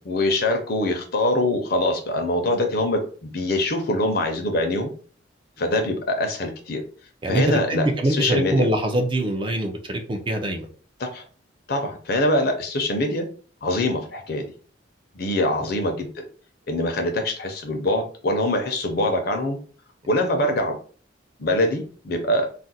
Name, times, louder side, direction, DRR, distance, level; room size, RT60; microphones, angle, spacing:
voice 1, 0.0-4.9 5.6-6.8 7.3-8.7 11.0-11.2 11.7-13.2 13.6-14.5 15.1-16.2 16.7-19.6 20.1-20.8 21.4-22.5, left 1 dB, 50° left, 5 dB, 0.6 m, -24 dB
voice 2, 7.2-10.7, right 1 dB, 25° right, 3 dB, 0.4 m, -23 dB
2.4 x 2.1 x 3.9 m, 0.42 s
head